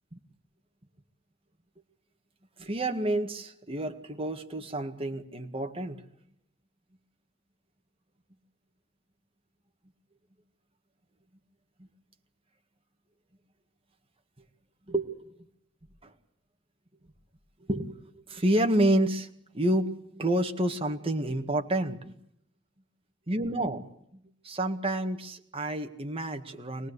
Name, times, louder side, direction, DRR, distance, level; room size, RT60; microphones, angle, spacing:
voice 1, 2.6-6.0 14.9-15.5 16.0-16.1 17.7-19.3 19.5-22.1 23.3-23.9 24.4-26.9, right 1 dB, 30° right, 4 dB, 1.9 m, -29 dB
25.5 x 19.0 x 8.2 m, 0.73 s
head